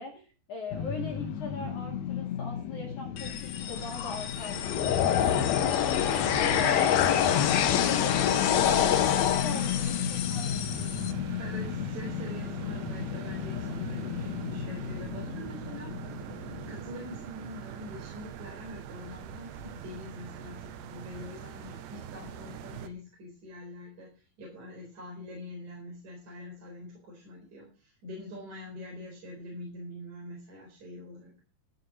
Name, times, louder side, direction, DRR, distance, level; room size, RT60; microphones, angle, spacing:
voice 1, 0.0-5.4 5.8-11.0, left 4 dB, 50° left, 1 dB, 2.9 m, -40 dB
sound 1, 0.7-17.9, left 8 dB, 85° left, 1.7 m, -35 dB
sound 2, 3.2-11.1, left 9 dB, 70° left, 2.5 m, -26 dB
sound 3, 6.3-22.9, right 9 dB, 80° right, 3.3 m, -43 dB
voice 2, 11.4-16.3 16.6-31.3, left 1 dB, 40° right, -1 dB, 5.1 m, -44 dB
13.5 x 7.9 x 6.2 m, 0.36 s
omnidirectional pair, 5.2 m